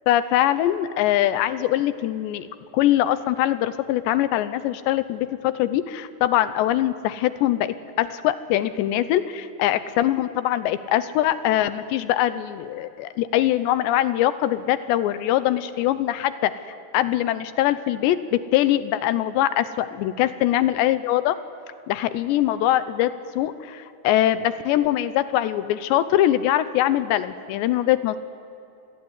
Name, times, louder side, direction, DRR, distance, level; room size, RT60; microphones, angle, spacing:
voice 1, 0.1-2.5 2.7-16.5 16.9-21.4 21.9-28.2, left 13 dB, 80° left, 14 dB, 3.0 m, -22 dB
28.0 x 22.0 x 9.8 m, 2.7 s
omnidirectional pair, 5.2 m